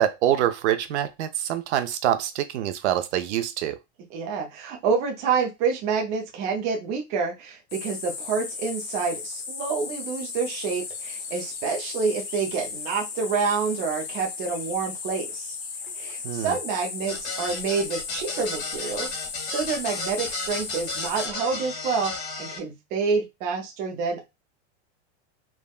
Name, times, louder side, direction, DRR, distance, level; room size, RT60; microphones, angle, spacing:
voice 1, 0.0-3.8 16.2-16.5, right 11 dB, 70° right, 0.5 m, -25 dB
voice 2, 4.1-15.6 16.0-19.2 19.4-22.1 22.4-24.3, right 5 dB, 20° right, 0.4 m, -28 dB
sound 1, 7.7-21.3, left 5 dB, 45° left, 0.7 m, -36 dB
sound 2, 17.1-22.6, left 3 dB, 65° left, 1.5 m, -34 dB
3.5 x 2.0 x 2.2 m
supercardioid pair, 160°, 35 cm